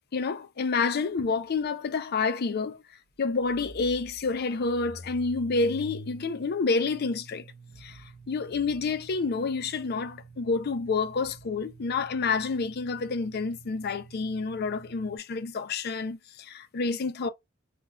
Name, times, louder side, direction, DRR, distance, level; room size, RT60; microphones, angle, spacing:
voice 1, 0.1-2.8 3.2-7.4 7.8-17.3, left 4 dB, 50° left, 0.4 m, -29 dB
sound 1, 1.6-1.7 3.2-15.2, right 1 dB, 75° right, 0.9 m, -48 dB
3.4 x 2.3 x 2.9 m
head